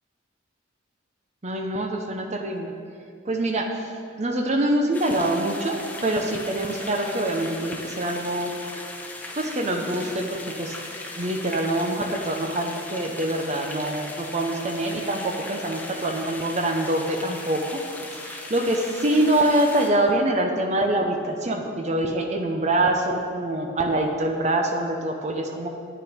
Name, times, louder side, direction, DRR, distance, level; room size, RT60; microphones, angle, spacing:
voice 1, 1.4-2.8 3.3-8.5 9.3-10.8 11.2-17.8 18.1-25.7, right 1 dB, 35° right, 4 dB, 0.7 m, -25 dB
sound 1, 4.9-19.9, left 2 dB, 10° left, 1.0 m, -38 dB
9.9 x 8.8 x 5.1 m, 2.4 s
head